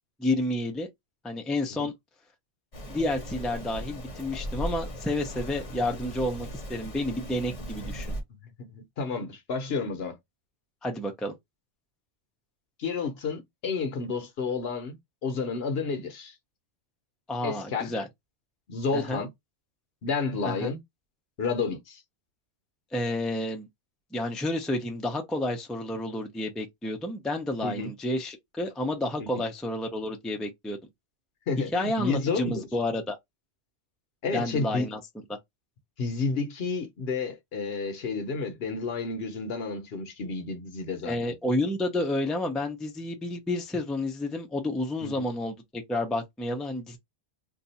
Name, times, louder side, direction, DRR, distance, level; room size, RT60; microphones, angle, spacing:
voice 1, 0.2-0.9 1.2-1.9 2.9-8.1 10.8-11.3 17.3-18.1 18.9-19.2 20.4-20.7 22.9-23.7 24.1-30.8 31.7-33.2 34.3-35.0 41.0-47.0, left 1 dB, ahead, 0.4 m, -30 dB
Rain, 2.7-8.2, equal, 35° left, 0.8 m, -37 dB
voice 2, 8.6-10.2 12.8-15.0 15.2-16.3 17.4-17.9 18.7-19.3 20.0-20.8 21.4-22.0 27.6-27.9 29.2-29.4 31.5-32.7 34.2-34.9 36.0-41.2 45.0-45.2, left 4 dB, 65° left, 1.0 m, -31 dB
2.6 x 2.3 x 4.0 m
omnidirectional pair, 1.1 m